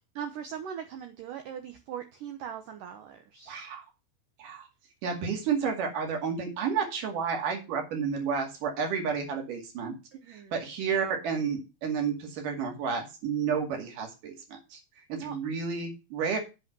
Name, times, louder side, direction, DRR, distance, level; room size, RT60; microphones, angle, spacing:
voice 1, 0.2-3.6 10.1-10.6 15.2-15.4, right 8 dB, 85° right, 7 dB, 1.8 m, -40 dB
voice 2, 3.5-3.8 4.4-4.7 5.0-9.9 10.3-14.8 15.1-16.4, right 6 dB, 50° right, 3 dB, 3.5 m, -31 dB
8.2 x 5.3 x 7.6 m, 0.28 s
omnidirectional pair, 5.2 m